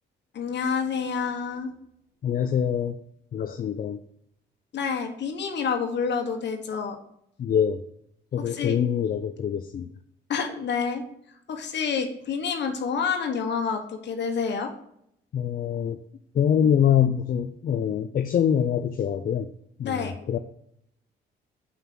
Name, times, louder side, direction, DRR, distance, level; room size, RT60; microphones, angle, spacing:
voice 1, 0.3-1.7 4.7-7.0 8.4-8.8 10.3-11.0 11.5-14.7 19.8-20.1, left 6 dB, 60° left, 4 dB, 1.4 m, -28 dB
voice 2, 2.2-2.9 3.3-4.0 7.4-7.8 8.3-9.9 15.3-16.0 16.4-19.5 19.8-20.4, left 8 dB, 45° left, 8 dB, 0.5 m, -24 dB
5.7 x 5.6 x 6.1 m, 0.72 s
cardioid pair, 90°, 20 cm